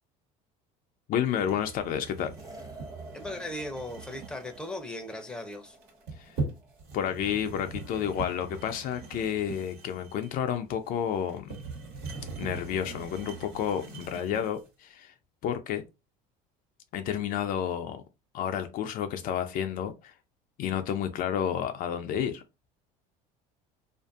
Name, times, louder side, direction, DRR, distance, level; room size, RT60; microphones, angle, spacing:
voice 1, 1.1-2.3 6.2-6.4 6.9-11.6 12.4-15.1 15.4-15.8 16.9-18.0 18.3-20.1 20.6-22.4, left 9 dB, 55° left, 0.4 m, -30 dB
sound 1, 1.3-14.7, right 3 dB, 65° right, 1.3 m, -41 dB
sound 2, 2.4-6.8, right 2 dB, 20° right, 0.9 m, -50 dB
voice 2, 3.1-5.8, left 1 dB, 5° left, 0.6 m, -38 dB
2.5 x 2.4 x 2.3 m
supercardioid pair, 95°, 17 cm